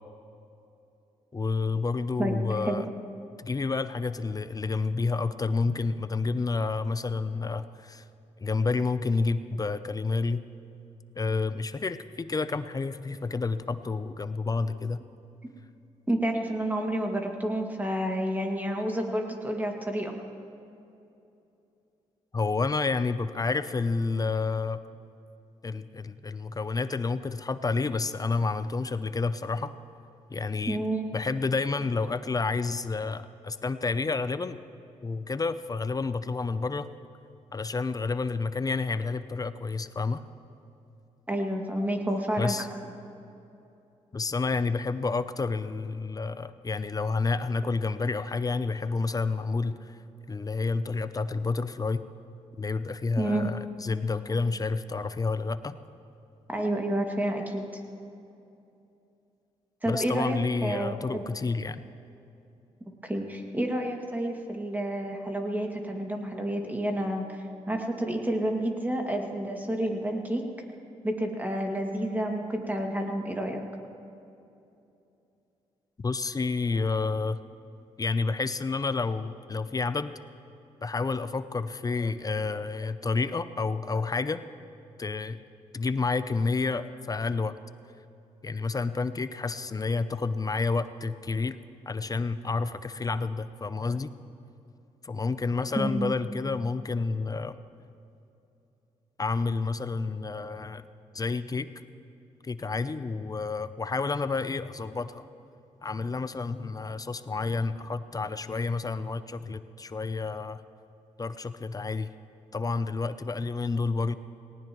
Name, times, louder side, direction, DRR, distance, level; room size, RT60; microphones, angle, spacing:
voice 1, 1.3-2.9 3.4-8.0 8.4-10.4 11.1-15.0 22.3-24.8 25.6-29.7 30.3-30.8 31.1-34.6 35.0-36.9 37.5-40.2 42.4-42.7 44.1-50.0 50.3-52.0 52.6-55.8 59.9-61.8 76.0-77.4 78.0-80.1 80.8-84.4 85.0-85.4 85.7-87.6 88.4-91.6 91.9-94.1 95.0-97.6 99.2-100.8 101.1-101.7 102.4-105.3 105.8-110.6 111.2-112.1 112.5-114.2, left 4 dB, 30° left, 13 dB, 0.6 m, -29 dB
voice 2, 16.1-20.1 30.7-31.0 41.3-42.7 53.2-53.5 56.5-57.6 59.8-61.2 63.0-70.4 71.0-73.6 95.8-96.1, right 1 dB, 15° right, 1 dB, 2.2 m, -29 dB
18.5 x 18.0 x 3.1 m, 2.8 s
supercardioid pair, 60°, 13 cm